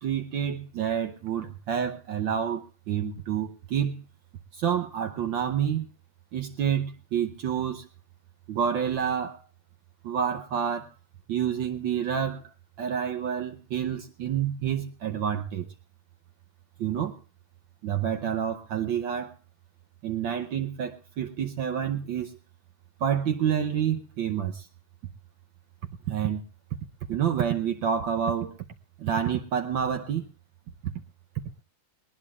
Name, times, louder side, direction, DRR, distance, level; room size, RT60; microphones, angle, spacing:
voice 1, 0.0-4.0 4.5-5.9 6.3-7.9 8.5-9.4 10.0-10.9 11.3-12.5 12.8-15.7 16.8-17.2 17.8-19.3 20.0-22.4 23.0-24.7 26.1-26.4 27.1-28.6 29.0-30.3 30.8-30.9, right 8 dB, 65° right, 1.6 m, -28 dB
19.5 x 19.5 x 2.4 m
omnidirectional pair, 2.3 m